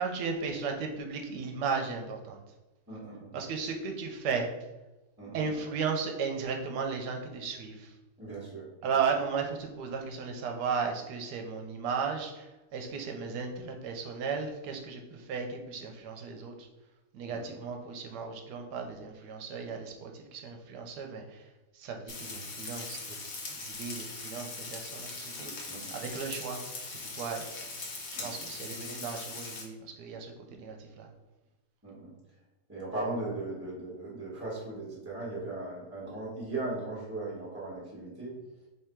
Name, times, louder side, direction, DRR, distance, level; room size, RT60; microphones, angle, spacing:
voice 1, 0.0-2.4 3.3-4.5 5.3-7.9 8.8-16.7 17.1-21.4 21.7-23.2 23.5-27.5 28.2-31.1, right 5 dB, 80° right, 3 dB, 1.3 m, -35 dB
voice 2, 2.9-3.4 5.2-5.6 8.2-8.9 17.3-17.5 25.7-25.9 28.1-28.3 31.8-32.1 32.7-38.3, right 2 dB, 10° right, -7 dB, 1.0 m, -38 dB
Frying (food), 22.1-29.6, left 3 dB, 55° left, 1.1 m, -41 dB
3.5 x 3.2 x 4.4 m, 1.1 s
omnidirectional pair, 1.8 m